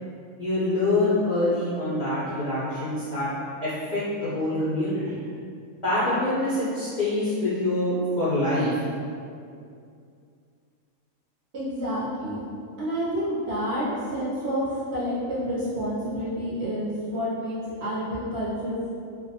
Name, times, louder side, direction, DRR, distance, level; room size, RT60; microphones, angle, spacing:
voice 1, 0.4-3.3 3.6-5.2 5.8-8.8, left 1 dB, 80° left, -11 dB, 0.4 m, -25 dB
voice 2, 11.5-12.4 12.8-18.9, equal, 60° right, -9 dB, 0.7 m, -29 dB
2.5 x 2.1 x 2.7 m, 2.4 s
omnidirectional pair, 1.5 m